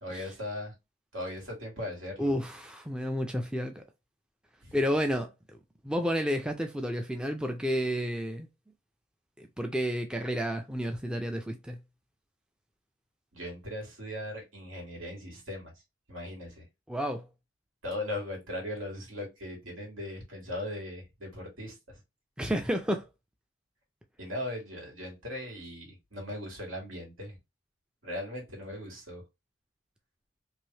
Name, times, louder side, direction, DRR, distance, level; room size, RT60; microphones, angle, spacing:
voice 1, 0.0-0.7 1.1-2.3 4.6-4.8 13.3-15.7 16.1-16.7 17.8-21.8 24.2-27.4 28.0-29.2, left 1 dB, 80° right, 2.0 m, -38 dB
voice 2, 2.2-3.8 4.7-5.6 5.8-8.5 9.4-11.8 16.9-17.3 22.4-23.1, equal, 5° right, 0.3 m, -31 dB
3.3 x 2.6 x 2.7 m
head